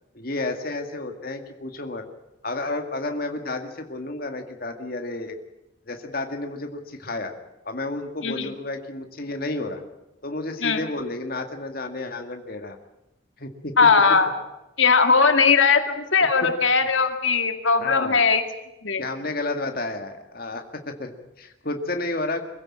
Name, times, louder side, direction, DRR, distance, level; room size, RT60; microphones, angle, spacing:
voice 1, 0.1-2.0 2.4-5.4 5.9-7.3 7.6-9.8 10.2-12.8 13.4-13.9 16.2-16.3 17.8-18.2 19.0-22.5, left 2 dB, 45° left, 5 dB, 2.1 m, -31 dB
voice 2, 13.8-14.3 14.8-18.4 18.8-19.0, left 5 dB, 75° left, 7 dB, 2.1 m, -19 dB
24.0 x 16.0 x 8.8 m, 0.94 s
head